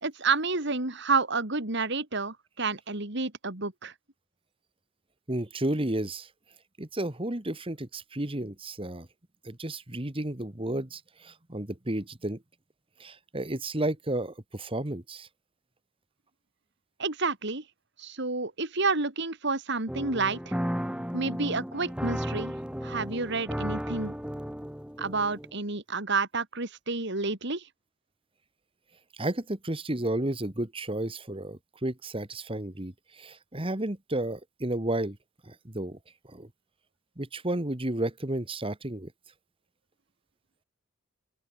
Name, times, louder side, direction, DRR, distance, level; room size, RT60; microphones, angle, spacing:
voice 1, 0.0-3.9 17.0-17.6 18.0-20.5 21.1-22.5 22.8-24.1 25.0-27.6, right 4 dB, 55° right, 3.0 m, -29 dB
voice 2, 5.3-6.3 6.8-9.1 9.4-12.4 13.0-15.3 29.2-35.2 35.5-36.0 36.3-36.5 37.2-39.1, right 1 dB, 25° right, 1.9 m, -32 dB
sound 1, 19.9-25.5, equal, 5° right, 3.9 m, -34 dB
open air
head